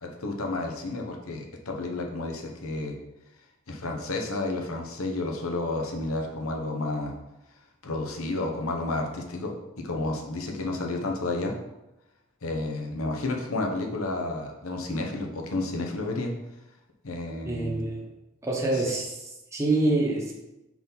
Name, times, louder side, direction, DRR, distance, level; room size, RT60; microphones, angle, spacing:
voice 1, 0.0-3.0 3.7-7.1 7.8-11.5 12.4-16.3 17.0-17.9 18.7-18.8, left 2 dB, 90° left, 1 dB, 1.0 m, -31 dB
voice 2, 17.4-18.0 18.4-20.3, right 2 dB, 15° right, -3 dB, 1.1 m, -26 dB
4.8 x 4.0 x 5.3 m, 0.95 s
head